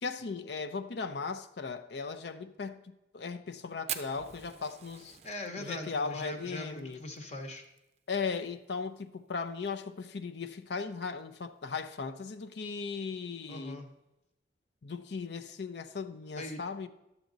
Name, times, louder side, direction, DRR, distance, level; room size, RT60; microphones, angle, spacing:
voice 1, 0.0-2.8 3.1-5.2 5.6-7.0 8.1-13.8 14.8-16.9, left 5 dB, 65° left, 0.5 m, -37 dB
Fire, 3.9-8.4 8.6-8.7 9.0-9.1 9.5-9.9 10.4-10.5 11.6-11.7, right 9 dB, 35° right, 0.5 m, -43 dB
voice 2, 5.2-7.6 13.5-13.9 16.4-16.6, left 1 dB, 35° left, 0.9 m, -41 dB
11.5 x 7.2 x 3.9 m
head